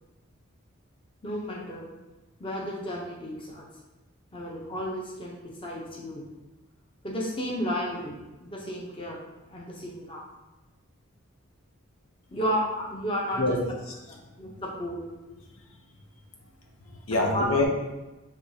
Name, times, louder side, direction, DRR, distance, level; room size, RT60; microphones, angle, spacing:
voice 1, 1.2-1.9 2.4-3.7 4.3-6.2 7.0-9.2 9.5-10.2 12.3-13.4 14.1-15.0 17.3-17.4, equal, 25° left, -2 dB, 0.6 m, -33 dB
voice 2, 13.4-14.2 15.6-15.7 16.8-17.6, left 2 dB, 80° left, 1 dB, 0.8 m, -27 dB
6.2 x 3.1 x 2.7 m, 1.1 s
head